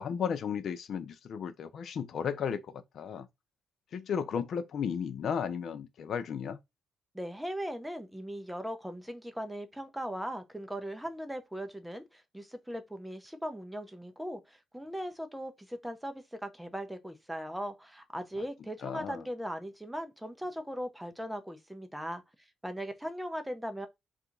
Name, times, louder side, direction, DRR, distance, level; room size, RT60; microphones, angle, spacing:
voice 1, 0.0-3.3 3.9-6.6 18.8-19.2, left 7 dB, 60° left, 0.5 m, -34 dB
voice 2, 7.1-22.2 22.6-23.9, equal, 5° right, 0.6 m, -39 dB
2.8 x 2.5 x 3.8 m
cardioid pair, 90°, 0 cm